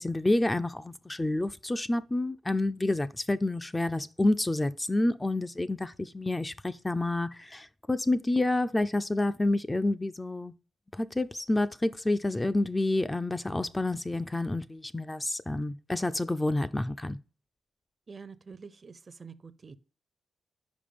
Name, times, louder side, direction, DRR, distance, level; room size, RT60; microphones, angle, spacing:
voice 1, 0.0-10.5 10.9-17.2, left 2 dB, 15° left, 0.3 m, -29 dB
voice 2, 18.1-19.8, right 5 dB, 40° right, 0.5 m, -47 dB
5.1 x 5.0 x 5.1 m
cardioid pair, 95°, 0 cm